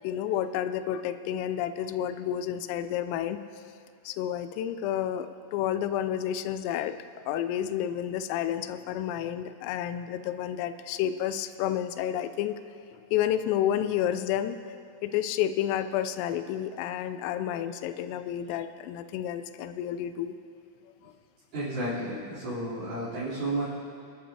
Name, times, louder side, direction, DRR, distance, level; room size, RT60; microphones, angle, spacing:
voice 1, 0.0-3.4 4.1-7.0 7.3-12.6 12.9-14.6 15.0-20.4 21.0-21.1, left 10 dB, 90° left, 11 dB, 3.3 m, -30 dB
voice 2, 21.5-23.6, right 1 dB, 45° right, -13 dB, 4.9 m, -32 dB
27.0 x 11.5 x 2.9 m, 2.4 s
omnidirectional pair, 5.9 m